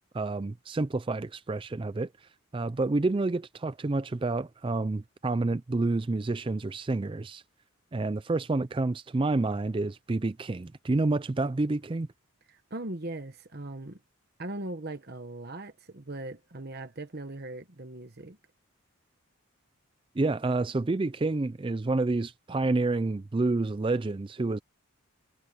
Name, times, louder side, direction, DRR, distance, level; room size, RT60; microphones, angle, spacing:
voice 1, 0.1-2.1 2.5-7.4 7.9-12.1 20.2-24.6, right 2 dB, 25° right, 0.4 m, -29 dB
voice 2, 12.5-14.0 14.4-18.4, right 2 dB, 45° right, 1.2 m, -39 dB
head